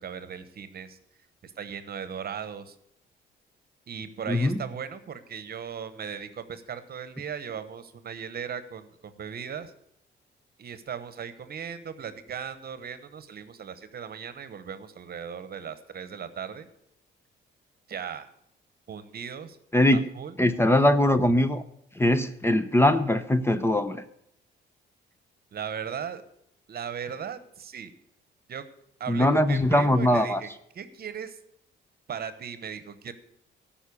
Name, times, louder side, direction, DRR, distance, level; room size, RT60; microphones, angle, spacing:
voice 1, 0.0-1.0 1.4-2.7 3.9-9.7 10.6-16.7 17.9-18.3 18.9-19.6 19.9-20.4 25.5-26.2 26.7-27.9 28.5-28.6 29.0-31.4 32.1-33.1, right 7 dB, 50° right, 12 dB, 1.1 m, -37 dB
voice 2, 20.4-21.6 22.0-24.0 29.1-30.4, left 1 dB, 10° left, 11 dB, 0.7 m, -21 dB
13.5 x 5.7 x 8.4 m, 0.73 s
cardioid pair, 90°, 20 cm